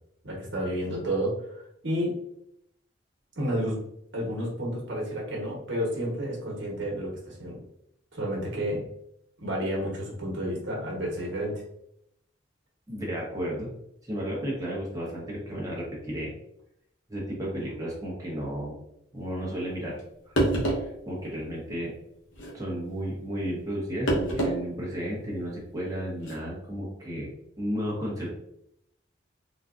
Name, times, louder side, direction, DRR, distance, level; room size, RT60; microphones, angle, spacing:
voice 1, 0.2-1.3 1.8-2.1 3.4-3.8 4.1-7.6 8.1-8.8 9.4-11.6, equal, 70° right, -2 dB, 1.1 m, -30 dB
voice 2, 12.9-13.7 14.0-16.3 17.1-18.7 19.1-20.0 20.3-21.9 22.5-27.3 27.6-28.3, equal, 20° right, -4 dB, 1.0 m, -33 dB
sound 1, 20.0-20.1 20.4-20.9 22.3-22.6 24.1-24.6 25.0-25.1 26.2-26.3, right 1 dB, 80° left, 0.8 m, -26 dB
3.9 x 2.3 x 2.5 m, 0.76 s
head